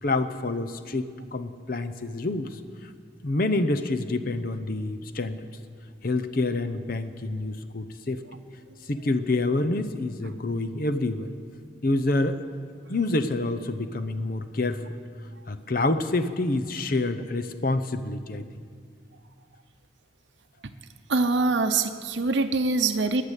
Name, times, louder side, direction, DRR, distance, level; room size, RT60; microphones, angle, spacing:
voice 1, 0.0-2.6 3.2-5.5 6.0-8.2 8.9-11.3 11.8-12.4 12.9-14.8 15.5-18.5, left 2 dB, 50° left, 9 dB, 0.8 m, -27 dB
voice 2, 21.1-23.2, right 3 dB, 75° right, 7 dB, 0.7 m, -24 dB
20.0 x 6.8 x 9.9 m, 2.1 s
head